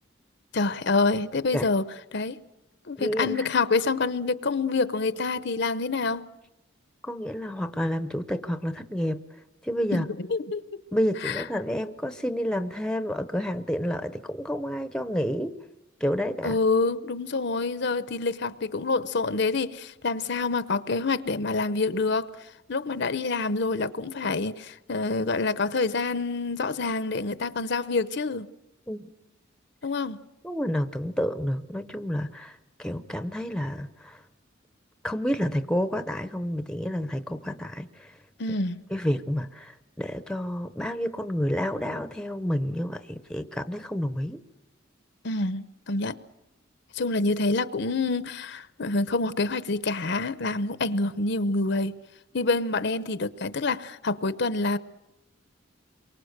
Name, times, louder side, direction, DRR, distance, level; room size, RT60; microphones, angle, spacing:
voice 1, 0.5-1.8 2.1-2.4 2.9-6.3 9.9-10.6 11.2-11.4 16.4-22.3 22.7-28.5 29.8-30.2 38.4-38.8 45.2-46.2 46.9-52.0 52.3-54.8, left 3 dB, 60° left, 0.8 m, -27 dB
voice 2, 3.0-3.5 7.0-9.2 9.6-10.1 10.9-15.6 16.0-16.6 28.9-29.1 30.4-34.2 35.0-38.1 38.9-44.4, equal, 5° left, 0.8 m, -29 dB
27.5 x 23.5 x 6.6 m
head